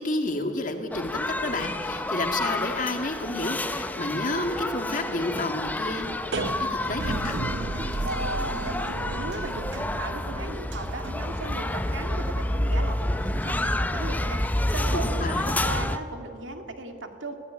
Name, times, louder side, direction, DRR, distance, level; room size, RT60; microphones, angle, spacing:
voice 1, 0.0-6.1 6.3-7.5 14.9-15.6, left 2 dB, 45° left, 5 dB, 2.1 m, -30 dB
sound 1, 0.9-16.0, left 1 dB, 10° left, 0.6 m, -29 dB
sound 2, 6.0-13.6, right 2 dB, 70° right, 0.7 m, -34 dB
voice 2, 8.4-17.3, right 2 dB, 90° right, 5 dB, 2.2 m, -37 dB
23.5 x 16.5 x 9.5 m, 2.6 s
head